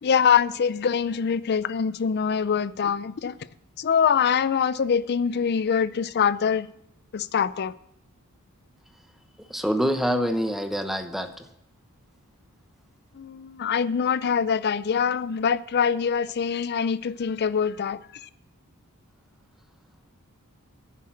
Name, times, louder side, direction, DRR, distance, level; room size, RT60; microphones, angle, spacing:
voice 1, 0.0-3.4 3.8-6.7 7.1-7.7 13.1-18.3, left 7 dB, 45° left, 0.4 m, -24 dB
voice 2, 9.5-11.5, equal, ahead, 0.8 m, -26 dB
10.5 x 7.6 x 7.4 m
head